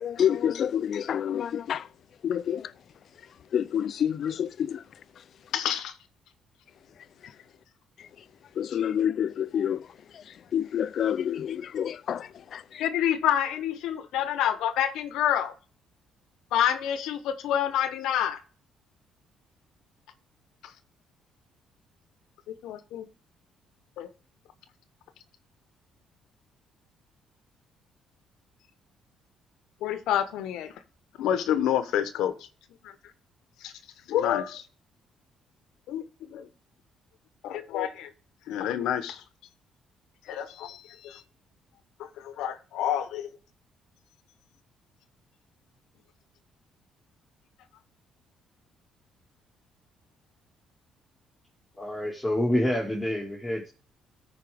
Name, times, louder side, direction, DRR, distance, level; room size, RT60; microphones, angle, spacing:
voice 1, 0.0-1.8 2.2-2.6 3.5-4.8 8.6-9.8 10.5-12.6, left 9 dB, 60° left, 0.4 m, -28 dB
voice 2, 5.5-5.9 12.8-15.5 16.5-18.4 22.6-23.1 24.0-24.1 29.8-30.7 31.2-32.3 32.8-32.9 33.6-33.7 34.1-34.6 35.9-36.5 37.4-38.1 38.5-39.2 40.3-41.2 42.2-43.3, left 10 dB, 80° left, 1.0 m, -28 dB
voice 3, 51.8-53.7, left 1 dB, 5° left, 2.0 m, -27 dB
13.5 x 4.7 x 3.4 m
cardioid pair, 85°, 0 cm